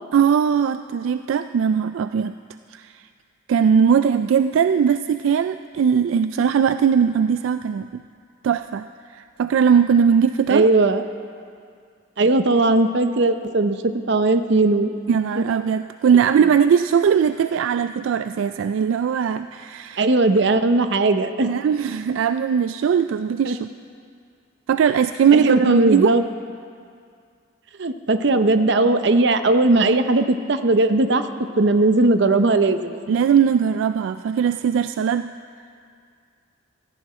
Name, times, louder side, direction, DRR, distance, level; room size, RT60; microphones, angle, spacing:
voice 1, 0.1-2.3 2.7-3.0 3.5-8.0 8.4-10.7 15.1-20.0 21.4-23.7 24.7-26.2 33.1-35.3, right 7 dB, 80° right, 11 dB, 0.3 m, -19 dB
voice 2, 10.5-11.0 12.2-14.9 20.0-21.5 23.4-23.6 25.3-26.2 27.8-31.2 31.5-33.0, right 2 dB, 60° right, 9 dB, 0.7 m, -18 dB
16.5 x 14.0 x 4.3 m, 2.3 s
head